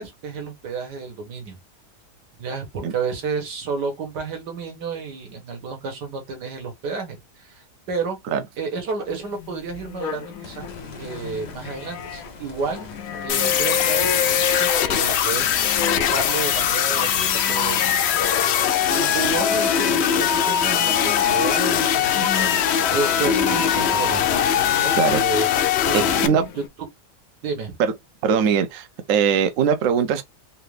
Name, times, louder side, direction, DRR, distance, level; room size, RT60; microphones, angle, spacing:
voice 1, 0.0-1.6 2.4-8.2 8.6-10.7 11.0-12.9 13.2-15.5 16.0-17.8 18.8-20.1 20.5-22.6 22.9-24.3 24.8-25.5 25.9-26.4 27.4-27.8, right 4 dB, 85° right, 1.9 m, -31 dB
sound 1, 9.1-12.3 12.6-25.2 25.8-26.7, left 6 dB, 65° left, 1.0 m, -32 dB
sound 2, 10.4-22.8 23.2-23.3 26.7-26.8, left 3 dB, 45° left, 0.6 m, -44 dB
sound 3, 13.3-26.3, left 9 dB, 85° left, 0.5 m, -21 dB
voice 2, 25.9-26.5 27.8-27.9 28.2-30.2, right 7 dB, 65° right, 0.9 m, -21 dB
4.1 x 2.6 x 3.2 m
omnidirectional pair, 1.7 m